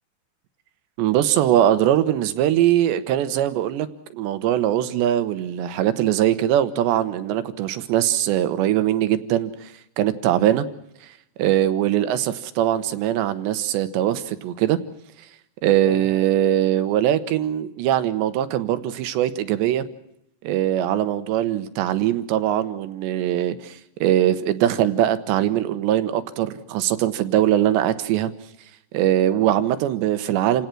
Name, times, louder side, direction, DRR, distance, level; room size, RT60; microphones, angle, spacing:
voice 1, 1.0-10.7 11.4-14.8 15.6-19.9 20.4-28.3 28.9-30.7, right 12 dB, 80° right, 11 dB, 3.3 m, -21 dB
29.0 x 17.5 x 6.1 m, 0.78 s
omnidirectional pair, 5.2 m